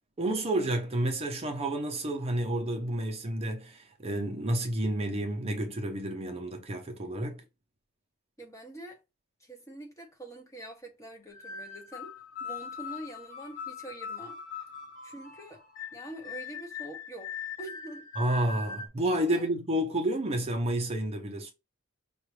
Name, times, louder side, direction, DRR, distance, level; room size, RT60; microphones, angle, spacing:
voice 1, 0.2-7.4 18.2-21.5, right 1 dB, 30° right, 0.6 m, -30 dB
voice 2, 8.4-9.0 9.4-12.1 12.4-14.4 15.0-15.6 15.9-17.3 17.6-18.1 19.3-19.5, right 2 dB, 15° left, 0.9 m, -45 dB
sound 1, 11.3-18.9, left 6 dB, 40° left, 1.0 m, -41 dB
5.6 x 2.4 x 3.2 m
head